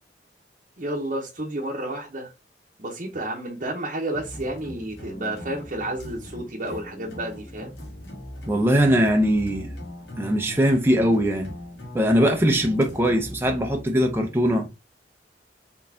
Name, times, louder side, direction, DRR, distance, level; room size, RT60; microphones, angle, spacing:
voice 1, 0.8-2.3 2.8-7.7, right 1 dB, 45° right, 0.9 m, -31 dB
sound 1, 4.1-13.6, left 1 dB, 75° left, 1.7 m, -40 dB
voice 2, 8.5-9.7 10.2-11.5 11.9-14.7, equal, 15° right, 0.6 m, -21 dB
4.1 x 3.8 x 2.7 m
head